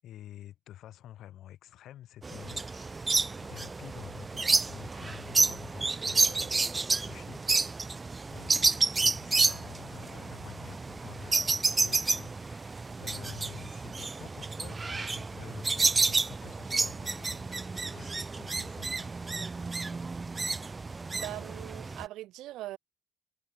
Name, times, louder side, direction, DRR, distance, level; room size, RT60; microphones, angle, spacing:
voice 1, 0.0-6.6 6.9-7.4 8.3-19.1 19.4-19.9, left 12 dB, 80° left, 7.9 m, -49 dB
sound 1, 2.2-22.0, right 3 dB, 25° right, 0.7 m, -30 dB
voice 2, 21.1-22.8, right 15 dB, 90° right, 1.2 m, -41 dB
cardioid pair, 90°, 0 cm